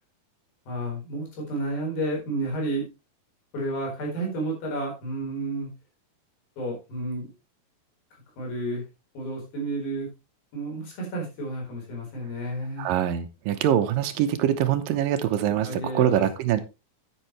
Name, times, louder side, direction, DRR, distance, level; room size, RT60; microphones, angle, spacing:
voice 1, 0.7-2.9 3.5-5.7 6.6-7.3 8.4-8.8 9.1-10.1 10.5-12.9 15.6-16.2, right 1 dB, 75° left, -1 dB, 6.3 m, -31 dB
voice 2, 12.8-16.6, right 10 dB, 75° right, 10 dB, 2.5 m, -24 dB
10.0 x 10.0 x 3.2 m, 0.27 s
omnidirectional pair, 4.2 m